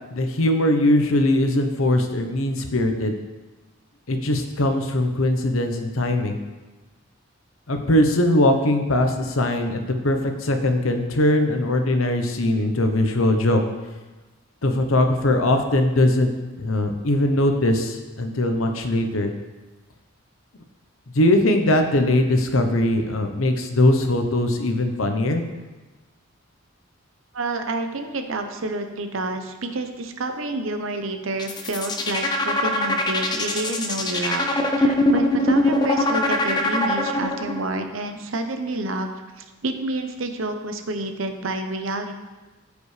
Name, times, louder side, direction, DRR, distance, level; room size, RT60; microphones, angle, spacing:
voice 1, 0.1-3.1 4.1-6.4 7.7-13.6 14.6-16.3 16.6-19.3 21.1-25.4, left 1 dB, 85° left, 5 dB, 0.9 m, -21 dB
voice 2, 27.3-34.4 34.8-39.1 39.4-42.2, right 2 dB, 75° right, 6 dB, 0.8 m, -29 dB
sound 1, 31.3-37.6, left 2 dB, 20° left, 0.7 m, -22 dB
14.0 x 5.1 x 3.3 m, 1.2 s
head